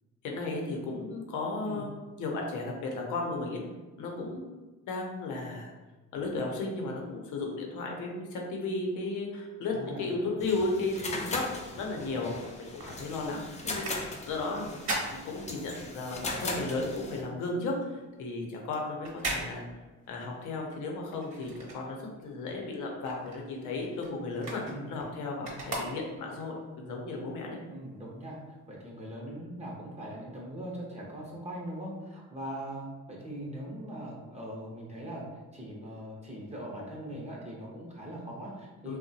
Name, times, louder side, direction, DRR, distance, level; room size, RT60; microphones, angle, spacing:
voice 1, 0.2-1.9 2.2-3.6 4.0-4.5 4.9-5.7 6.1-11.5 11.7-14.8 15.1-19.6 20.1-24.6 24.9-27.6 38.9-39.0, left 3 dB, 80° left, 0 dB, 0.7 m, -34 dB
voice 2, 9.7-10.1 24.6-25.0 27.7-28.4 28.7-35.3 35.5-39.0, right 1 dB, 20° right, -4 dB, 0.6 m, -41 dB
sound 1, 10.4-17.2, left 2 dB, 25° left, 0.4 m, -39 dB
sound 2, 12.4-16.1 16.4-22.4 22.7-26.5 27.0-27.1, right 2 dB, 45° right, 1.0 m, -40 dB
2.8 x 2.1 x 2.7 m, 1.2 s
cardioid pair, 90°, 30 cm